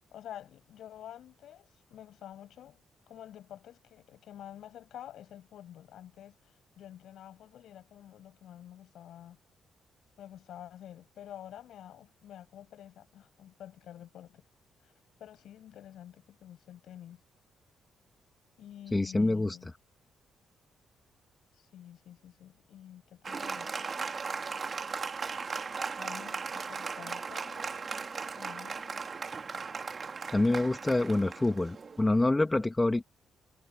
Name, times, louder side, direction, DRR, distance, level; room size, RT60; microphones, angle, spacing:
voice 1, 0.1-2.8 3.1-9.4 10.2-14.4 14.8-14.9 15.2-17.2 18.6-19.7 21.5-24.1 26.0-29.1, left 11 dB, 75° left, 7.4 m, -49 dB
voice 2, 18.9-19.6 30.3-33.0, left 2 dB, 20° left, 2.3 m, -26 dB
Applause, 23.2-32.2, right 5 dB, 45° right, 2.2 m, -37 dB
supercardioid pair, 60°, 0 cm